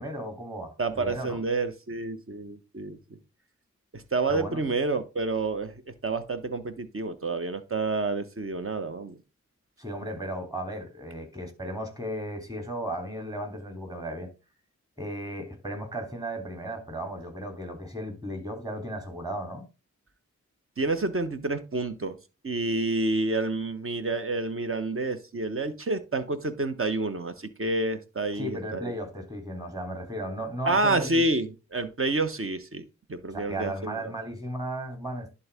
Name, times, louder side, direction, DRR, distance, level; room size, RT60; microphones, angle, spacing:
voice 1, 0.0-1.4 4.3-4.7 9.8-14.3 15.0-19.6 28.3-31.3 33.3-35.3, right 1 dB, 10° right, 3.4 m, -35 dB
voice 2, 0.8-3.2 3.9-5.7 6.0-9.2 20.8-22.2 22.4-28.9 30.6-34.1, right 2 dB, 45° right, 1.3 m, -29 dB
11.0 x 4.2 x 3.6 m
cardioid pair, 40°, 30 cm